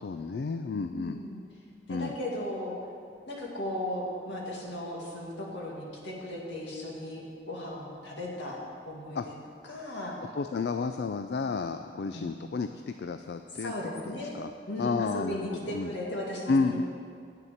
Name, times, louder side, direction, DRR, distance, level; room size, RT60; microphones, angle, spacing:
voice 1, 0.0-1.2 1.9-2.1 9.2-9.3 10.3-13.7 14.0-14.5 14.8-15.9 16.5-16.8, left 4 dB, 60° left, 8 dB, 0.3 m, -31 dB
voice 2, 0.7-1.4 1.9-2.8 3.3-8.6 8.9-9.2 9.7-10.1 12.1-12.3 13.6-14.3 14.7-16.8, left 1 dB, 80° left, -3 dB, 2.1 m, -36 dB
9.1 x 6.7 x 7.2 m, 2.2 s
head